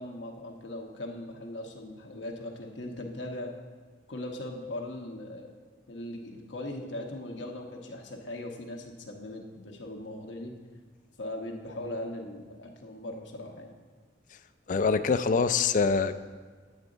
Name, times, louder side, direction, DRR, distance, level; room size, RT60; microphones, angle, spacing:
voice 1, 0.0-3.5 4.1-5.5 5.9-10.5 11.2-13.7, left 1 dB, 85° left, 1 dB, 1.1 m, -39 dB
voice 2, 14.7-16.2, left 5 dB, 45° left, 12 dB, 0.3 m, -24 dB
9.5 x 8.0 x 3.9 m, 1.5 s
head